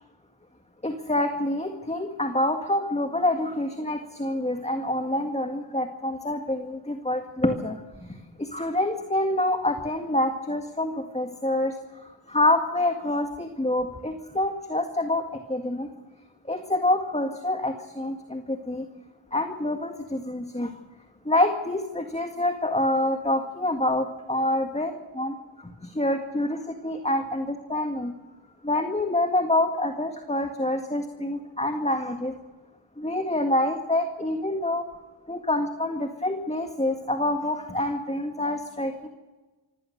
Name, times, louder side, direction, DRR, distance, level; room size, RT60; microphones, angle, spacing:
voice 1, 0.8-11.8 12.3-15.2 15.5-15.9 16.5-18.9 19.3-20.7 21.3-28.1 28.6-32.3 33.0-34.9 35.3-39.1, left 1 dB, 15° left, 5 dB, 1.8 m, -27 dB
25.5 x 16.0 x 6.7 m, 1.2 s
cardioid pair, 60°, 50 cm